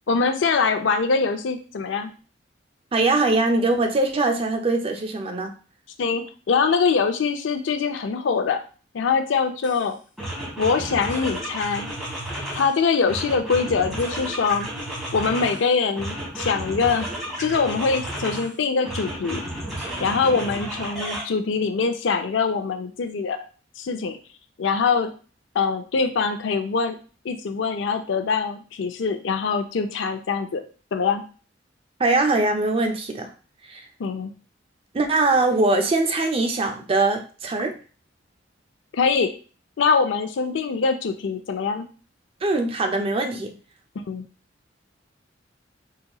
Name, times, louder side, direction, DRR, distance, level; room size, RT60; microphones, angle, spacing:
voice 1, 0.1-2.1 6.0-8.6 8.9-10.0 10.6-11.9 12.5-14.7 15.1-17.1 17.4-19.4 20.0-23.4 23.8-24.2 24.6-25.1 25.5-27.0 27.2-30.6 30.9-31.2 34.0-34.3 38.9-39.3 39.8-41.9 44.0-44.3, left 5 dB, 75° left, 7 dB, 0.4 m, -23 dB
voice 2, 2.9-5.5 32.0-33.3 33.7-33.8 34.9-37.8 42.4-43.5, right 2 dB, 30° right, 5 dB, 0.4 m, -22 dB
sound 1, 9.6-9.8 10.2-12.7 13.1-15.6 16.0-18.5 18.8-21.2, right 1 dB, ahead, 1.4 m, -32 dB
3.9 x 2.9 x 2.3 m, 0.38 s
head